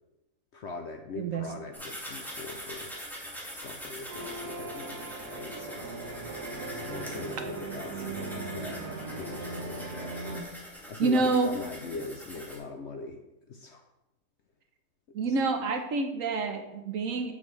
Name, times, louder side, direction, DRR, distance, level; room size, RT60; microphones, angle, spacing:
voice 1, 0.5-2.9 3.5-5.9 6.8-10.2 10.9-13.2 13.5-13.8 15.1-15.3, left 4 dB, 60° left, 4 dB, 0.7 m, -41 dB
sound 1, 1.7-12.6, equal, ahead, 1.9 m, -43 dB
sound 2, 4.1-10.4, right 3 dB, 85° right, 1.5 m, -39 dB
voice 2, 11.0-11.5 15.1-17.3, right 3 dB, 65° right, 6 dB, 1.1 m, -27 dB
8.2 x 7.1 x 3.2 m, 0.94 s
omnidirectional pair, 1.6 m